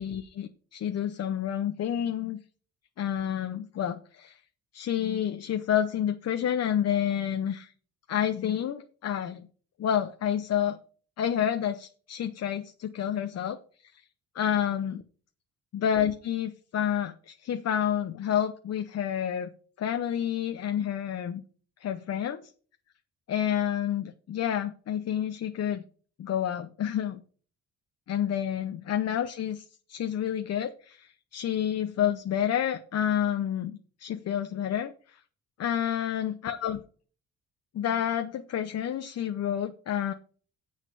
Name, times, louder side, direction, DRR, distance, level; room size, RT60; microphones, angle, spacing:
voice 1, 0.0-2.4 3.0-4.4 4.7-7.7 8.1-9.5 9.8-10.8 11.2-13.6 13.9-14.0 14.3-14.9 15.7-19.5 19.8-21.4 21.8-22.4 23.3-25.8 26.2-27.2 28.1-35.2 35.6-36.8 37.7-40.1, left 9 dB, 55° left, 8 dB, 0.8 m, -29 dB
7.4 x 6.5 x 6.8 m, 0.42 s
cardioid pair, 90°, 30 cm